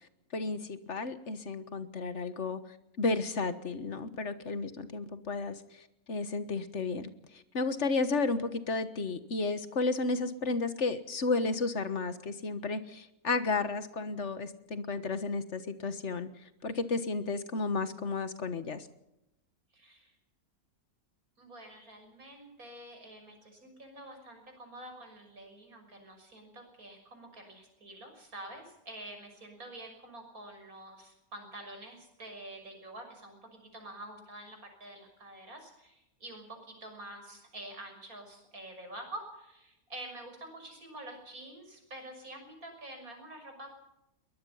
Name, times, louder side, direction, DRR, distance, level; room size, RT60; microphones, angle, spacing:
voice 1, 0.3-2.6 3.0-5.5 6.1-7.1 7.5-16.3 16.6-18.9, left 3 dB, 50° left, 12 dB, 1.7 m, -32 dB
voice 2, 19.7-20.1 21.4-43.8, right 1 dB, 70° right, 4 dB, 6.7 m, -47 dB
22.5 x 20.0 x 5.7 m, 0.87 s
omnidirectional pair, 1.6 m